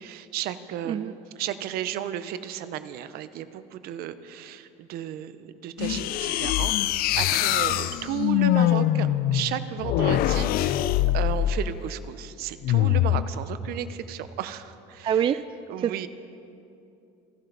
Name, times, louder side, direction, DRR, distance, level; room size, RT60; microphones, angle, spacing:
voice 1, 0.0-10.8 11.1-15.3 15.7-16.1, right 11 dB, 65° right, 12 dB, 0.9 m, -34 dB
sound 1, 5.8-11.7 12.6-13.3, left 13 dB, 60° left, 0.6 m, -23 dB
voice 2, 15.0-15.4 15.8-15.9, right 9 dB, 30° right, 12 dB, 0.4 m, -24 dB
27.0 x 12.0 x 4.1 m, 2.6 s
supercardioid pair, 105°, 17 cm